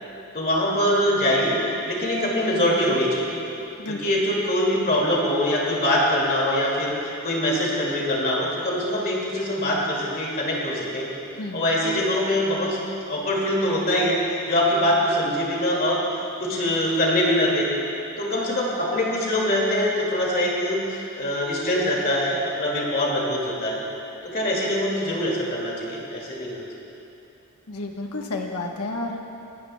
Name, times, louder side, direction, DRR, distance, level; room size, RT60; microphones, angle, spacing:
voice 1, 0.3-1.6 1.9-3.4 3.9-7.0 7.2-11.1 11.5-12.8 13.1-16.0 16.4-17.7 18.2-23.8 24.2-26.6, left 1 dB, 40° left, -3 dB, 2.2 m, -23 dB
voice 2, 3.8-4.2 11.4-11.6 27.7-29.2, left 2 dB, 80° left, 2 dB, 1.1 m, -31 dB
20.0 x 12.0 x 2.2 m, 2.8 s
head